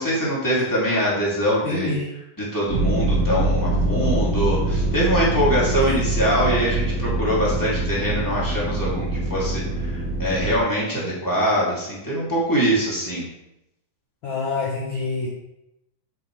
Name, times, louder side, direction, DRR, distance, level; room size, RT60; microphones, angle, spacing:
voice 1, 0.0-1.9 2.4-13.2, equal, 5° left, -7 dB, 2.2 m, -23 dB
voice 2, 1.6-2.1 14.2-15.3, left 4 dB, 50° left, -3 dB, 1.7 m, -26 dB
sound 1, 2.7-10.6, right 2 dB, 35° right, 1.4 m, -24 dB
8.6 x 7.7 x 3.3 m, 0.85 s
omnidirectional pair, 3.7 m